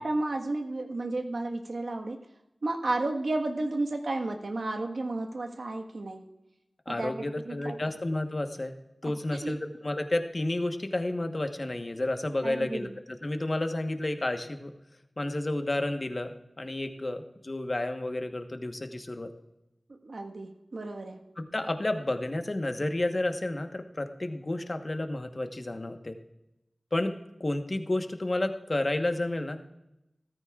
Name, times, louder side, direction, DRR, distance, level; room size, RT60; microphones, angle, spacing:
voice 1, 0.0-2.2 2.6-6.2 6.9-7.8 9.0-9.6 12.4-12.9 19.9-21.2, right 2 dB, 80° right, 3 dB, 1.4 m, -32 dB
voice 2, 6.9-8.8 9.0-14.7 15.2-19.3 21.4-26.2 26.9-27.1 27.4-29.7, left 1 dB, 45° left, 6 dB, 1.1 m, -31 dB
16.5 x 14.0 x 2.4 m, 0.89 s
wide cardioid pair, 65°, 0 cm